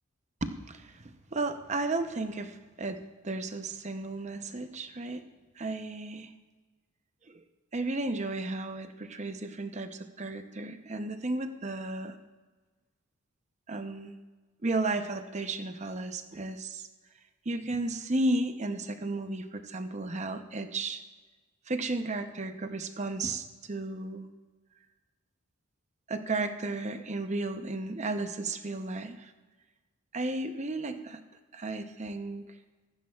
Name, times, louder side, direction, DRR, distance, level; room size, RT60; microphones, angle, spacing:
voice 1, 0.4-5.2 5.6-6.3 7.3-7.4 7.7-12.2 13.7-14.1 14.6-16.9 17.4-21.0 21.7-24.3 26.1-29.3 30.1-31.2 31.5-32.4, right 2 dB, 35° right, 8 dB, 0.7 m, -34 dB
15.5 x 15.0 x 2.4 m, 1.3 s
head